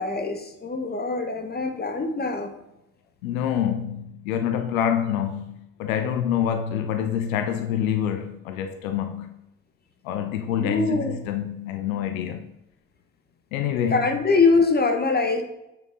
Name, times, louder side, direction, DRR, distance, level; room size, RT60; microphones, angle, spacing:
voice 1, 0.0-2.5 10.5-11.2 13.9-15.4, left 3 dB, 25° left, 1.5 m, -23 dB
voice 2, 3.2-9.3 10.0-12.4 13.5-14.0, left 9 dB, 80° left, 0.7 m, -26 dB
9.0 x 5.7 x 3.9 m
figure-of-eight pair, 45°, 41 cm